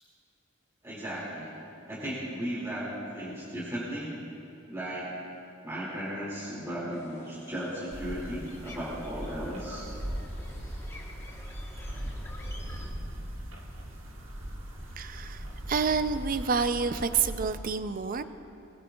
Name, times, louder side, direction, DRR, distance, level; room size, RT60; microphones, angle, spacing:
voice 1, 0.8-4.1 4.7-5.1 5.6-9.9, equal, 15° right, -8 dB, 2.4 m, -36 dB
sound 1, 6.9-12.9, left 1 dB, 15° left, 1.2 m, -51 dB
sound 2, 7.9-17.6, equal, 75° right, 1.6 m, -39 dB
voice 2, 15.0-18.2, right 5 dB, 45° right, 11 dB, 0.5 m, -28 dB
21.0 x 17.5 x 2.3 m, 2.7 s
head